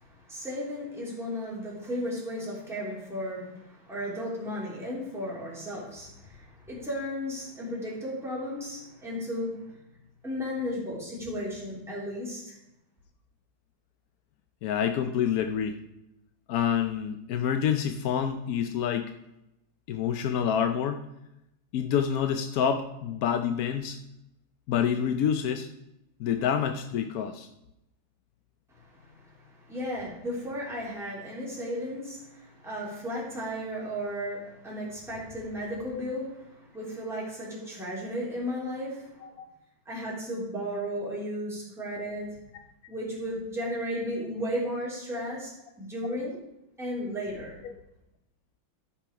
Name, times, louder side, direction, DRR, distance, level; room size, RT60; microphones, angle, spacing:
voice 1, 0.0-9.7 10.2-12.5 28.7-39.3 39.8-42.3 42.9-45.5 45.8-46.4 46.8-47.6, equal, ahead, -6 dB, 3.2 m, -34 dB
voice 2, 14.6-15.8 16.5-19.1 19.9-21.1 21.7-24.0 24.7-25.7 26.2-27.5 39.2-39.5 47.6-47.7, left 8 dB, 70° left, 7 dB, 0.8 m, -27 dB
13.5 x 6.0 x 4.8 m, 0.86 s
omnidirectional pair, 2.2 m